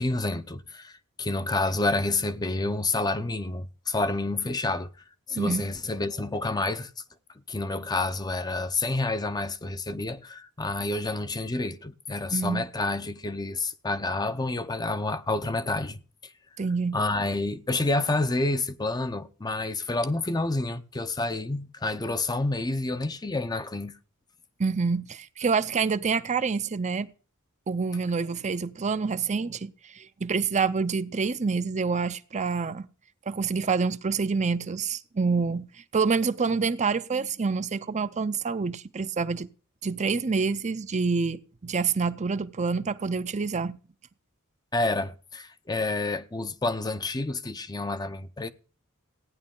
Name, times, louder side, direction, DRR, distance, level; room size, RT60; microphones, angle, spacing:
voice 1, 0.0-4.9 5.3-6.9 7.5-16.3 16.9-23.9 44.7-48.5, left 2 dB, 20° left, 0.6 m, -29 dB
voice 2, 5.3-5.6 12.3-12.6 16.6-17.0 24.6-27.1 27.7-32.9 33.3-39.5 39.8-43.8, right 5 dB, 35° right, 0.6 m, -27 dB
15.5 x 9.8 x 3.7 m
head